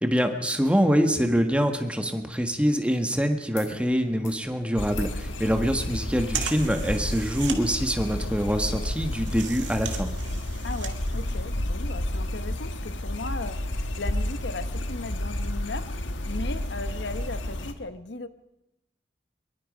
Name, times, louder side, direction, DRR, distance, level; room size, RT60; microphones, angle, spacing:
voice 1, 0.0-10.1, equal, 5° right, 6 dB, 1.5 m, -25 dB
sound 1, 3.5-3.7 4.0-4.5 4.9-5.2 6.5-6.6, left 6 dB, 40° left, 4.7 m, -48 dB
sound 2, 3.9-11.8, right 8 dB, 80° right, 2.3 m, -39 dB
sound 3, 4.8-17.7, left 1 dB, 85° left, 1.6 m, -31 dB
voice 2, 5.3-5.6 10.6-16.0 16.2-18.3, left 2 dB, 65° left, 11 dB, 1.1 m, -37 dB
23.5 x 22.5 x 5.3 m, 0.87 s
head